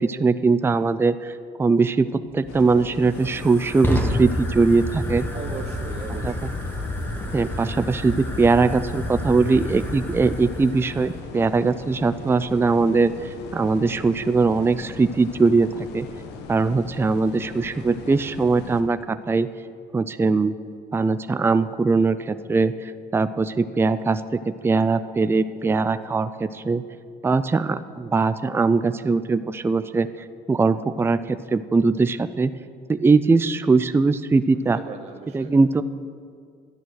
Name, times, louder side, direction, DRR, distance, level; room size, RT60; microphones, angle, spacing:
voice 1, 0.0-1.3 1.6-5.3 6.2-6.5 7.3-16.1 16.5-19.5 19.9-20.6 20.9-26.8 27.2-30.1 30.5-32.5 32.9-34.8 35.3-35.8, right 4 dB, 15° right, 12 dB, 0.4 m, -21 dB
Fire, 2.3-11.2, left 1 dB, 10° left, 1.8 m, -30 dB
sound 1, 2.5-18.8, left 5 dB, 85° left, 1.4 m, -39 dB
voice 2, 5.3-6.6 34.5-35.5, right 5 dB, 40° right, 2 dB, 1.1 m, -38 dB
13.0 x 10.5 x 6.4 m, 2.1 s
cardioid pair, 110°, 17 cm